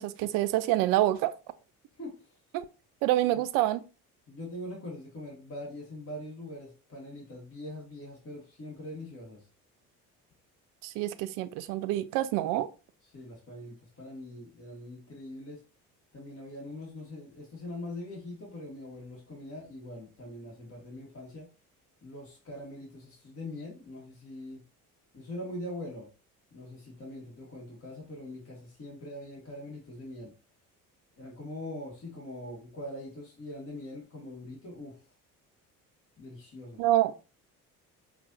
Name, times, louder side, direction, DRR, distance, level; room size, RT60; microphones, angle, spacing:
voice 1, 0.0-1.3 2.5-2.7 3.0-3.8 10.8-12.7 36.8-37.1, right 14 dB, 50° right, 0.5 m, -27 dB
voice 2, 2.0-2.4 4.3-9.5 13.1-15.6 16.1-21.5 22.0-24.6 25.1-26.1 26.5-30.3 31.2-35.0 36.2-36.8, left 1 dB, 30° left, 1.7 m, -42 dB
5.9 x 2.4 x 2.7 m
figure-of-eight pair, 55°, 45 cm